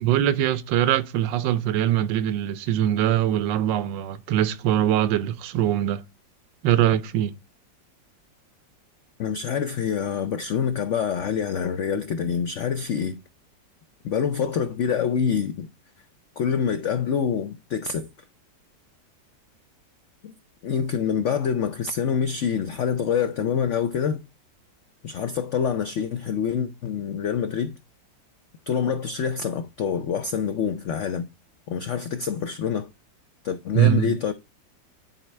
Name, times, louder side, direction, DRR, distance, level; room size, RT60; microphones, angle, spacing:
voice 1, 0.0-6.0 6.6-7.3 33.7-34.2, right 12 dB, 85° right, 1.3 m, -22 dB
voice 2, 9.2-13.2 14.0-15.7 16.4-18.1 20.2-20.3 20.6-24.2 25.0-27.8 28.7-31.3 31.7-32.9 33.4-34.3, left 7 dB, 80° left, 0.6 m, -26 dB
10.0 x 4.3 x 3.2 m
omnidirectional pair, 2.0 m